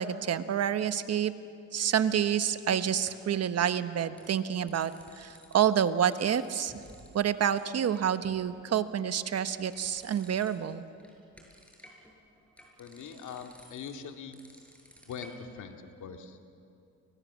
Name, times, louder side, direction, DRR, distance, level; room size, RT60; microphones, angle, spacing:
voice 1, 0.0-1.3 1.7-6.7 7.1-10.8, right 9 dB, 55° right, 11 dB, 1.2 m, -28 dB
sound 1, 2.2-3.4 3.9-4.3 4.5-5.5 5.8-7.2 7.5-7.6 7.9-8.6 9.1-10.7 11.0-15.6, equal, 5° left, 7.0 m, -55 dB
voice 2, 12.8-14.4 15.1-16.5, left 6 dB, 75° left, 4 dB, 2.3 m, -42 dB
30.0 x 23.5 x 7.4 m, 2.6 s
cardioid pair, 90°, 30 cm